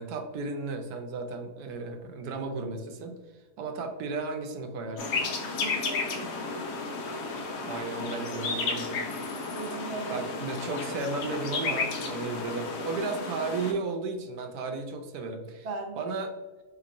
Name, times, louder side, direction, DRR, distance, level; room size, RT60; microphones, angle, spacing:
voice 1, 0.0-5.2 7.6-9.0 10.1-15.7 16.0-16.3, right 3 dB, 80° right, 5 dB, 1.1 m, -34 dB
sound 1, 5.0-13.7, left 3 dB, 85° left, 1.3 m, -33 dB
voice 2, 5.5-6.9 9.5-10.2 15.6-16.1, right 3 dB, 55° right, 1 dB, 0.4 m, -39 dB
4.2 x 2.9 x 2.5 m, 1.2 s
omnidirectional pair, 1.7 m